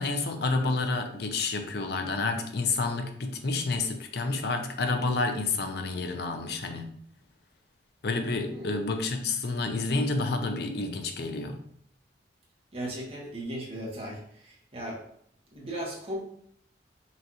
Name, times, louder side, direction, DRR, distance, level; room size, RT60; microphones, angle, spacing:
voice 1, 0.0-6.9 8.0-11.6, left 3 dB, 65° left, 6 dB, 0.6 m, -29 dB
voice 2, 12.7-15.0 15.5-16.2, right 1 dB, 35° right, -3 dB, 1.2 m, -37 dB
5.6 x 2.5 x 2.9 m, 0.65 s
head